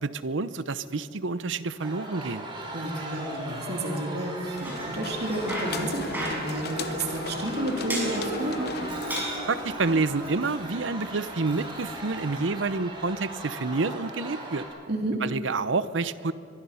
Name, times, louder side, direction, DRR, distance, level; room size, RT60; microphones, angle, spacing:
voice 1, 0.0-2.5 9.5-14.7 15.2-16.3, right 3 dB, 80° right, 15 dB, 0.8 m, -28 dB
sound 1, 1.8-14.6, right 1 dB, 25° right, 4.2 m, -37 dB
voice 2, 2.7-8.7 14.9-15.2, right 1 dB, 60° right, 1 dB, 2.9 m, -31 dB
Bicycle, 4.4-12.7, right 1 dB, 10° right, 6.8 m, -39 dB
sound 2, 4.6-10.0, left 4 dB, 60° left, 0.9 m, -38 dB
24.0 x 23.0 x 5.7 m, 2.6 s
head